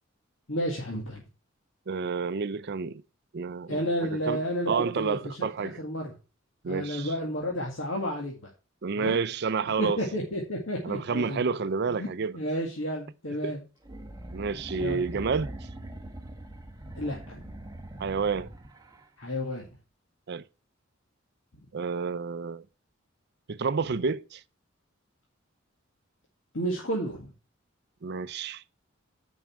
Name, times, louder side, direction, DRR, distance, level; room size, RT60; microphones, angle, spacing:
voice 1, 0.5-1.2 3.7-6.1 6.7-8.3 9.0-9.2 9.6-11.4 11.9-12.1 12.3-13.6 14.8-15.0 17.0-17.4 19.2-19.7 26.5-27.3, equal, 70° left, 1.9 m, -31 dB
voice 2, 1.9-3.0 3.3-4.4 4.7-5.8 6.6-7.1 8.8-10.0 10.8-12.4 13.4-13.5 14.3-15.5 18.0-18.5 20.3-20.4 21.7-22.6 23.5-24.4 28.0-28.6, right 5 dB, 55° right, 0.5 m, -29 dB
sound 1, 13.8-19.1, right 1 dB, 20° right, 1.2 m, -42 dB
9.3 x 5.4 x 4.7 m
head